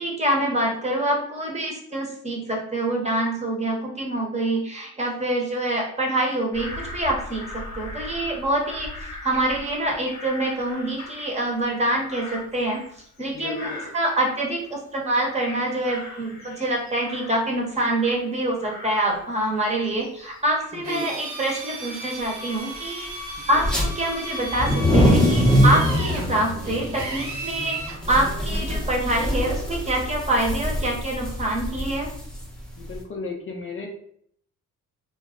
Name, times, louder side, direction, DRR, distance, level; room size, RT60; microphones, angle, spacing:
voice 1, 0.0-12.8 13.2-13.7 13.9-23.1 23.5-32.1, right 1 dB, 20° right, -1 dB, 0.9 m, -25 dB
Bird vocalization bird call bird song / Crow, 6.5-14.8 15.2-18.3 18.6-24.6 25.1-25.7, left 2 dB, 65° left, 0.9 m, -41 dB
voice 2, 13.3-13.9 20.7-21.1 23.5-23.7 32.8-33.9, left 4 dB, 45° left, 1 dB, 0.5 m, -34 dB
Drill, 20.8-28.0, right 2 dB, 70° right, 0.9 m, -35 dB
sound 1, 23.6-23.8 24.4-32.9, equal, 5° left, 0.7 m, -23 dB
2.2 x 2.0 x 3.5 m, 0.66 s
cardioid pair, 90°, 30 cm